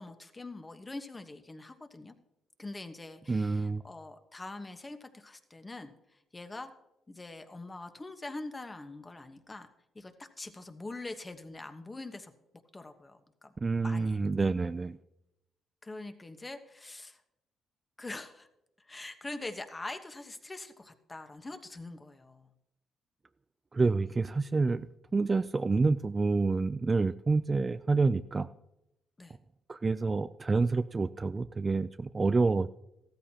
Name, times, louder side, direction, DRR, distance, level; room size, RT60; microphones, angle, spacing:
voice 1, 0.0-2.1 2.6-5.9 6.3-6.7 7.1-9.7 9.9-12.3 12.7-13.5 13.8-14.2 15.8-17.2 18.0-18.5 18.8-22.5 29.2-29.4, left 2 dB, 20° left, 7 dB, 1.2 m, -43 dB
voice 2, 3.3-3.8 13.6-15.0 23.7-28.5 29.7-32.7, right 3 dB, 30° right, 12 dB, 0.4 m, -28 dB
15.0 x 13.5 x 2.9 m, 0.87 s
cardioid pair, 90°, 0 cm